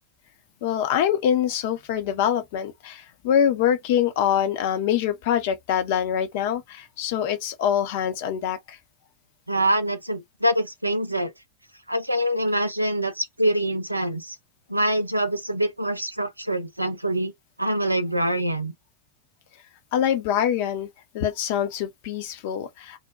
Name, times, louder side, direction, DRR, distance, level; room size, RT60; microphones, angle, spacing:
voice 1, 0.6-8.8 19.9-20.9 21.1-23.0, left 9 dB, 50° left, 0.6 m, -24 dB
voice 2, 9.5-11.3 11.9-14.4 14.7-17.3 17.6-18.7, right 1 dB, 85° right, 0.5 m, -25 dB
2.6 x 2.1 x 2.3 m
figure-of-eight pair, 90°, 0 cm